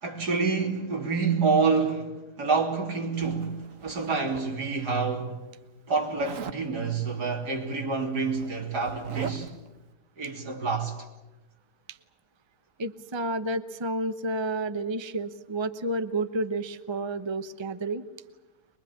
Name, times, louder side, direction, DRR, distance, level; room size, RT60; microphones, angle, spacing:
voice 1, 0.0-5.4 5.9-9.5 10.2-11.0, right 4 dB, 90° right, 3.8 m, -27 dB
Zipper (clothing), 3.2-4.8 6.2-6.6 7.8-7.9 8.2-9.7, right 6 dB, 55° right, 1.4 m, -41 dB
voice 2, 12.8-18.0, right 2 dB, 20° right, 0.8 m, -30 dB
23.5 x 22.5 x 8.8 m
omnidirectional pair, 1.7 m